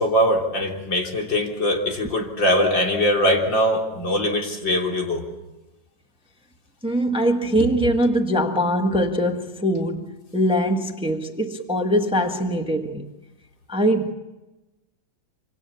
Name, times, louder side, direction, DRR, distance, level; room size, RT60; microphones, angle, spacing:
voice 1, 0.0-5.2, equal, 90° left, 4.3 m, -22 dB
voice 2, 6.8-13.0 13.7-14.1, equal, 5° right, 1.3 m, -22 dB
26.0 x 26.0 x 7.1 m
omnidirectional pair, 2.0 m